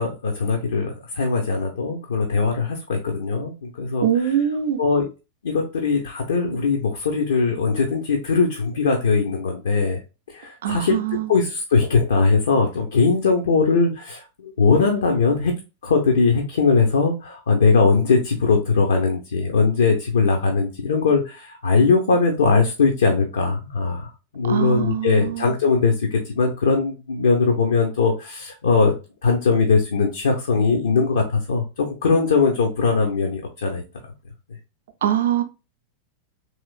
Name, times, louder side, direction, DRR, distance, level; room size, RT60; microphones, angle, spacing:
voice 1, 0.0-4.0 4.8-5.1 5.4-10.0 10.3-15.5 15.8-24.1 24.3-28.9 29.2-33.8, left 4 dB, 65° left, 0.6 m, -20 dB
voice 2, 4.0-4.8 10.6-11.3 24.4-25.6 35.0-35.4, right 10 dB, 60° right, 0.5 m, -23 dB
3.1 x 3.0 x 2.3 m
figure-of-eight pair, 90°, 0 cm